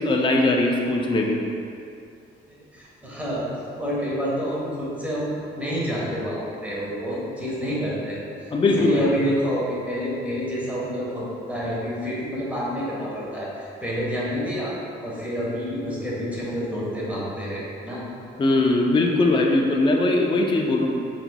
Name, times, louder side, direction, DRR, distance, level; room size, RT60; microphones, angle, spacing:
voice 1, 0.0-1.4 8.5-9.1 18.4-20.9, left 2 dB, 25° left, 0 dB, 0.4 m, -20 dB
voice 2, 2.7-3.4 3.8-14.7 15.0-18.0, equal, 5° right, -7 dB, 1.2 m, -28 dB
4.3 x 4.1 x 2.2 m, 2.5 s
cardioid pair, 90°, 20 cm